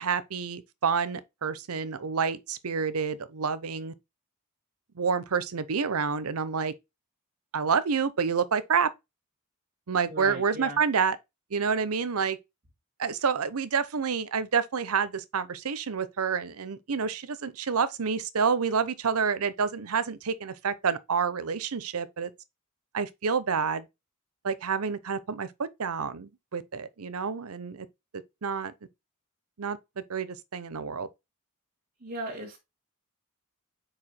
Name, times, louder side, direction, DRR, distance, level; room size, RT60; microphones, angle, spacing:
voice 1, 0.0-3.9 5.0-6.7 7.5-8.9 9.9-11.2 11.5-12.4 13.0-22.3 22.9-23.9 24.4-27.9 28.4-28.7 29.6-29.8 30.1-31.1, right 6 dB, 85° right, 0.7 m, -28 dB
voice 2, 10.1-10.8 32.0-32.6, right 1 dB, 50° right, 1.6 m, -37 dB
4.9 x 4.6 x 4.3 m
head